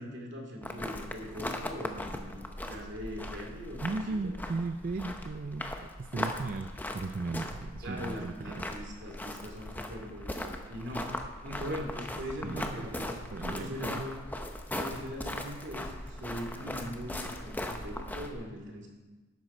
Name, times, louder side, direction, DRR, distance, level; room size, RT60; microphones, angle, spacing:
voice 1, 0.0-4.3 7.8-13.2 13.4-14.1 14.7-18.9, equal, 60° right, 1 dB, 2.5 m, -41 dB
sound 1, 0.6-18.3, left 1 dB, 10° left, 0.7 m, -39 dB
voice 2, 3.8-8.6 12.4-12.8 13.3-14.1, right 3 dB, 45° right, 9 dB, 0.4 m, -36 dB
12.5 x 10.0 x 4.3 m, 1.2 s
head